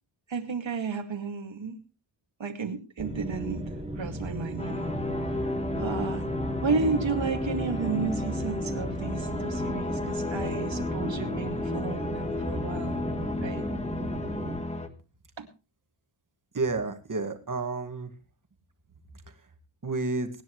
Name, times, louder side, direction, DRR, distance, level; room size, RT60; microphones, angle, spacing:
voice 1, 0.3-1.8 2.4-3.7 4.0-4.9 5.8-6.2 6.6-13.0 13.4-13.6 15.4-15.5, right 5 dB, 65° right, 5 dB, 2.2 m, -32 dB
sound 1, 3.0-14.6, right 1 dB, 15° right, 2.8 m, -35 dB
sound 2, 4.6-14.9, left 2 dB, 15° left, 1.5 m, -33 dB
voice 2, 16.5-18.1 19.8-20.3, right 3 dB, 40° right, 6 dB, 2.1 m, -30 dB
24.0 x 10.0 x 3.1 m, 0.33 s
wide cardioid pair, 110°, 48 cm